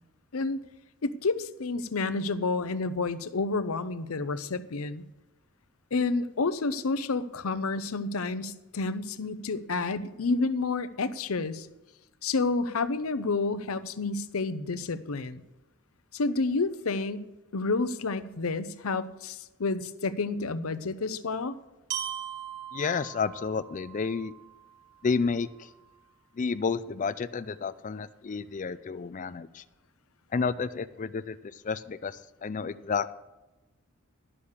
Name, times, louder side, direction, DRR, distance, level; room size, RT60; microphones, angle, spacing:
voice 1, 1.0-5.0 5.9-11.7 12.2-15.4 16.1-17.2 17.5-21.6, left 3 dB, 80° left, 13 dB, 0.7 m, -30 dB
Glockenspiel, 21.9-25.9, right 9 dB, 45° right, 2.4 m, -40 dB
voice 2, 22.7-24.3 25.0-25.7 26.4-29.6 30.3-31.4 31.6-33.1, left 5 dB, 35° left, 13 dB, 0.4 m, -31 dB
11.0 x 6.7 x 7.1 m, 1.0 s
head